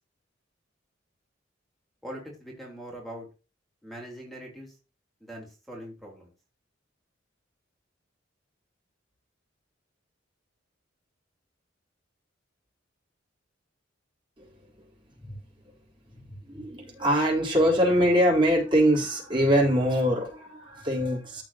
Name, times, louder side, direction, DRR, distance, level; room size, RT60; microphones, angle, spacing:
voice 1, 2.0-3.3 3.8-4.8 5.2-6.3, right 1 dB, ahead, -1 dB, 3.7 m, -42 dB
voice 2, 16.2-21.4, equal, 25° right, -3 dB, 3.7 m, -23 dB
14.5 x 5.1 x 2.9 m, 0.31 s
head